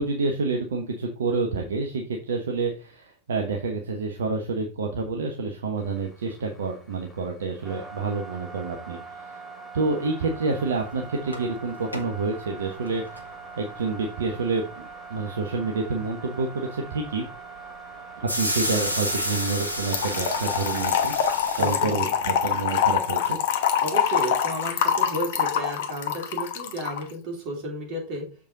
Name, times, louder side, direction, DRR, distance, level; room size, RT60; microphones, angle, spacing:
voice 1, 0.0-9.4 9.7-13.0 13.6-17.2 18.2-21.1 21.6-23.4, right 4 dB, 65° right, 2 dB, 1.1 m, -28 dB
sound 1, 5.8-23.3, right 4 dB, 5° left, 2.7 m, -43 dB
sound 2, 10.6-10.7 11.0-11.1 11.3-12.1 12.7-13.3 14.2-14.3 18.3-21.8, equal, 85° left, 1.3 m, -30 dB
Trickle dribble / Fill (with liquid), 19.9-27.0, left 8 dB, 55° left, 1.0 m, -25 dB
voice 2, 21.6-22.1 23.8-28.3, right 1 dB, 40° right, 1 dB, 3.1 m, -32 dB
6.9 x 5.2 x 4.0 m, 0.37 s
figure-of-eight pair, 90°, 0 cm